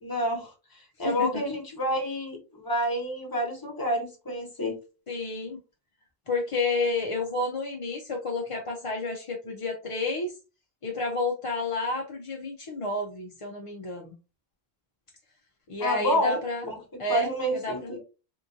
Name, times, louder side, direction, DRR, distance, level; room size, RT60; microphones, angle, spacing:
voice 1, 0.0-4.8 15.8-16.8 17.1-18.0, equal, 20° left, 1 dB, 1.0 m, -29 dB
voice 2, 1.0-1.4 5.1-5.6 6.3-10.3 10.8-14.2 15.7-16.7 17.0-17.9, left 3 dB, 45° left, 1 dB, 0.4 m, -30 dB
3.6 x 2.5 x 2.6 m, 0.31 s
omnidirectional pair, 1.0 m